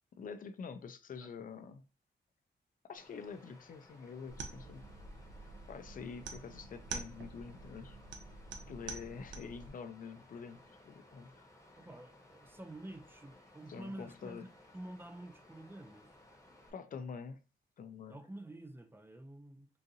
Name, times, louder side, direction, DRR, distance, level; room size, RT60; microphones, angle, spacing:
voice 1, 0.2-1.9 2.9-4.8 5.7-8.0 8.7-10.6 10.8-11.5 13.7-14.5 16.7-17.4 17.8-18.2, left 6 dB, 45° left, 0.4 m, -46 dB
Water, 3.0-16.7, left 1 dB, 15° left, 0.9 m, -61 dB
sound 1, 4.3-9.7, right 4 dB, 75° right, 0.6 m, -47 dB
voice 2, 11.8-14.5 14.7-16.1 18.1-19.7, right 1 dB, 10° right, 0.5 m, -49 dB
3.8 x 2.5 x 2.7 m
wide cardioid pair, 105°, 19 cm